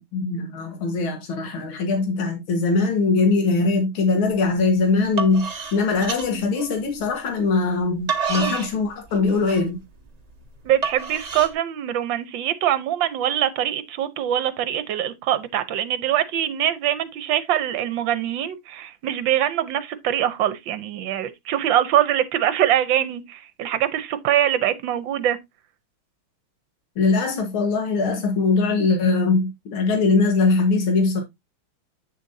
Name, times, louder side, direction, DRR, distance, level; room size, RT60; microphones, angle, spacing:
voice 1, 0.0-9.8 27.0-31.2, left 3 dB, 80° left, 2.3 m, -21 dB
sound 1, 4.3-4.6 5.0-7.1 7.7-11.5, right 5 dB, 55° right, 0.4 m, -29 dB
voice 2, 10.6-25.4, right 11 dB, 70° right, 1.5 m, -23 dB
9.0 x 6.8 x 2.7 m
omnidirectional pair, 2.2 m